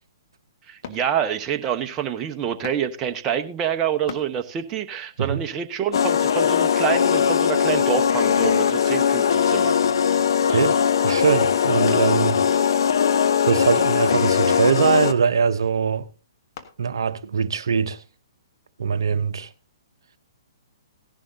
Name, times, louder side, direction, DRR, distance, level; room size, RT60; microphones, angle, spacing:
voice 1, 0.7-9.7 10.1-10.2, right 8 dB, 25° right, 1.0 m, -27 dB
sound 1, 0.8-1.1 2.6-2.9 4.1-4.3 5.9-6.2 7.2-7.5 8.4-8.7 9.8-10.1 11.9-12.2 14.1-14.3 16.6-16.7 17.3-17.4, left 8 dB, 50° left, 1.5 m, -38 dB
sound 2, 5.9-15.1, left 7 dB, 65° left, 0.7 m, -20 dB
voice 2, 10.5-12.4 13.4-16.1 16.8-18.0 18.8-19.5, right 6 dB, 70° right, 0.8 m, -22 dB
16.0 x 11.0 x 2.7 m
figure-of-eight pair, 125°, 2 cm